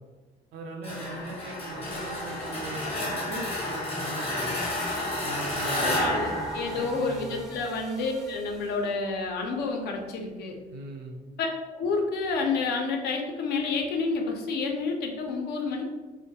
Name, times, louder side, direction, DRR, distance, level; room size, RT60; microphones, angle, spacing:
voice 1, 0.5-4.6 5.2-6.4 6.7-7.4 10.7-11.2, right 2 dB, 85° right, 2 dB, 0.5 m, -39 dB
sound 1, 0.8-7.6, left 1 dB, 35° left, 0.7 m, -31 dB
sound 2, 1.8-8.9, equal, ahead, 0.4 m, -44 dB
voice 2, 5.7-10.5 11.4-15.8, left 4 dB, 75° left, 2 dB, 0.5 m, -29 dB
2.2 x 2.1 x 2.7 m, 1.2 s
cardioid pair, 110°, 17 cm